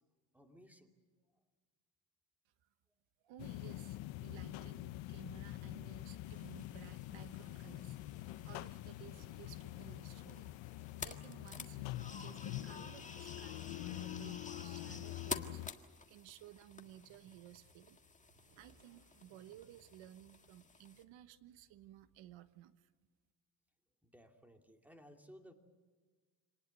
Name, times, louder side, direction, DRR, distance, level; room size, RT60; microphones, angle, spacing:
voice 1, 0.3-0.9 24.0-25.5, equal, 5° right, 4 dB, 2.7 m, -59 dB
voice 2, 3.2-8.0 8.4-10.5 11.0-15.6 16.1-18.0 18.6-22.9, right 12 dB, 85° right, 12 dB, 1.3 m, -57 dB
sound 1, 3.4-15.7, left 15 dB, 80° left, 0.9 m, -46 dB
sound 2, 6.2-21.0, left 3 dB, 15° left, 1.6 m, -51 dB
Motorcycle, 6.8-22.6, right 2 dB, 50° right, 7.7 m, -70 dB
27.5 x 19.5 x 8.3 m, 1.4 s
cardioid pair, 125°, 45 cm